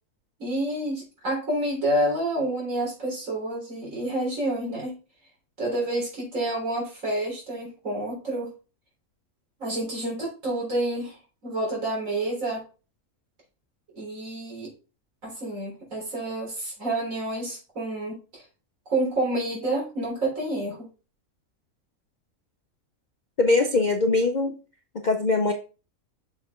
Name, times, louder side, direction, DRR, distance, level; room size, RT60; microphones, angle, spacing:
voice 1, 0.4-5.0 5.6-8.5 9.6-11.2 11.4-12.6 13.9-14.7 15.2-18.4 18.9-20.9, right 1 dB, 65° right, -2 dB, 3.9 m, -29 dB
voice 2, 23.4-24.5 25.0-25.5, left 3 dB, 45° left, 4 dB, 0.6 m, -21 dB
7.0 x 4.9 x 3.6 m, 0.34 s
omnidirectional pair, 1.5 m